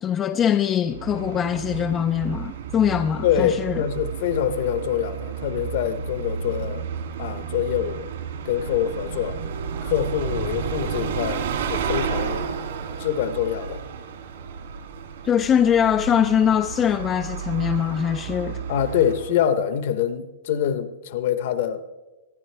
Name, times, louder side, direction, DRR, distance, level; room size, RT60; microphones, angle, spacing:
voice 1, 0.0-3.8 15.2-18.6, left 9 dB, 15° left, 0.4 m, -22 dB
Bus, 0.8-19.4, right 7 dB, 65° right, 2.6 m, -32 dB
voice 2, 3.2-6.9 7.2-8.1 8.4-9.4 9.8-12.5 13.0-13.8 18.7-21.8, left 10 dB, 45° left, 0.9 m, -25 dB
25.5 x 10.5 x 3.4 m
hypercardioid pair, 170°, 0 cm